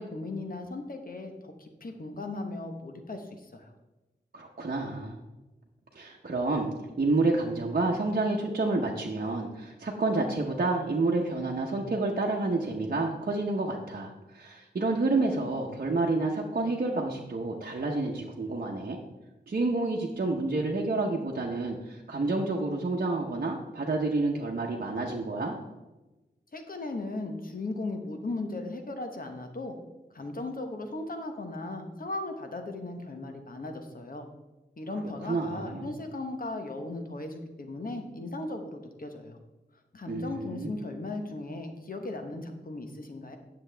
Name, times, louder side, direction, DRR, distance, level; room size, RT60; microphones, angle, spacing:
voice 1, 0.0-3.7 26.5-29.7 30.1-34.3 34.8-39.4 39.9-43.4, left 2 dB, 55° left, 5 dB, 1.0 m, -37 dB
voice 2, 4.3-5.2 5.9-6.7 7.0-19.0 19.5-25.6 35.2-35.9 40.1-40.7, right 3 dB, 55° right, -2 dB, 0.9 m, -29 dB
9.5 x 6.9 x 3.4 m, 1.1 s
wide cardioid pair, 75°, 18 cm